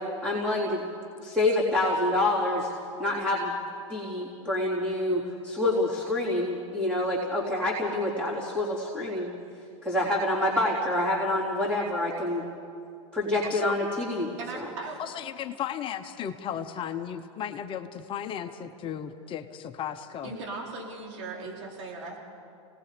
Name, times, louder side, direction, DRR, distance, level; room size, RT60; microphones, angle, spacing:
voice 1, 0.2-0.8 1.2-2.7 3.0-3.5 3.9-9.3 9.8-12.4 13.1-14.7, left 1 dB, 5° right, -8 dB, 3.8 m, -27 dB
voice 2, 13.4-13.8 15.0-20.3, left 9 dB, 30° left, 7 dB, 1.1 m, -35 dB
voice 3, 14.4-15.0 20.2-22.2, right 3 dB, 70° right, -2 dB, 4.6 m, -38 dB
29.5 x 19.5 x 5.1 m, 2.5 s
hypercardioid pair, 125°, 17 cm